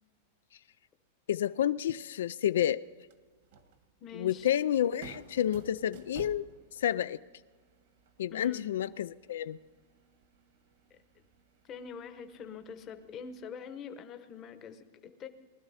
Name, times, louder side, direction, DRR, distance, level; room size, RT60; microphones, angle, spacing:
voice 1, 1.3-2.8 4.1-7.2 8.2-9.6, left 11 dB, 85° left, 15 dB, 0.3 m, -30 dB
sound 1, 2.9-13.4, right 4 dB, 55° right, 1.4 m, -56 dB
voice 2, 4.0-4.5 8.3-8.7 10.9-11.0 11.6-15.3, left 7 dB, 20° left, 9 dB, 0.9 m, -45 dB
19.5 x 12.5 x 4.1 m, 1.4 s
supercardioid pair, 175°, 0 cm